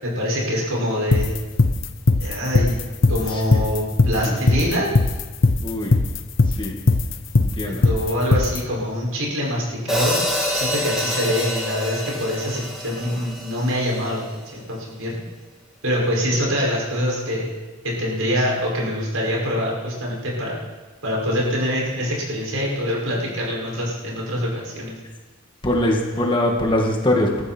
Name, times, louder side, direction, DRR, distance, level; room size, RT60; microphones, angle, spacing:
voice 1, 0.0-1.4 2.2-2.8 3.1-4.9 7.6-10.2 10.5-15.2 15.8-17.5 17.8-20.6 21.0-25.0, equal, 80° right, -3 dB, 6.4 m, -24 dB
sound 1, 1.1-8.6, left 2 dB, 65° left, 0.9 m, -18 dB
voice 2, 5.6-5.9 6.6-6.8 7.4-7.8 25.6-27.4, left 1 dB, 20° left, 0 dB, 2.0 m, -22 dB
Hi-hat, 9.9-14.1, left 1 dB, ahead, 2.7 m, -26 dB
20.5 x 14.0 x 4.6 m, 1.3 s
head